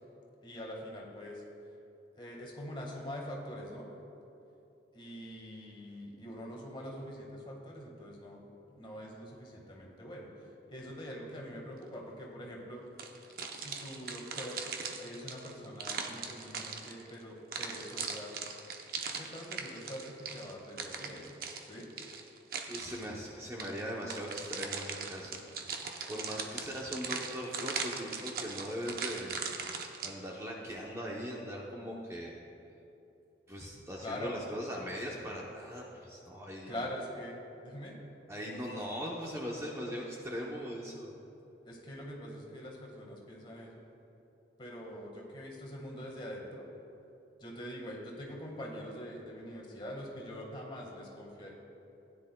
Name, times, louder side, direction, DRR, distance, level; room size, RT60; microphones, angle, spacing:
voice 1, 0.4-1.4 2.1-3.9 4.9-8.5 8.7-10.3 10.7-12.8 13.5-14.6 15.0-18.3 19.2-21.3 21.6-21.9 34.0-34.4 36.7-37.9 41.6-43.8 44.6-46.6 47.4-51.5, equal, 30° left, -2 dB, 1.6 m, -44 dB
sound 1, 13.0-17.2 17.5-23.1 23.6-30.1, right 5 dB, 55° right, 0.8 m, -40 dB
voice 2, 22.7-25.4 26.1-29.4 30.0-32.4 33.5-36.8 38.3-41.2, equal, 15° right, -2 dB, 0.8 m, -40 dB
16.0 x 10.0 x 2.3 m, 2.8 s
head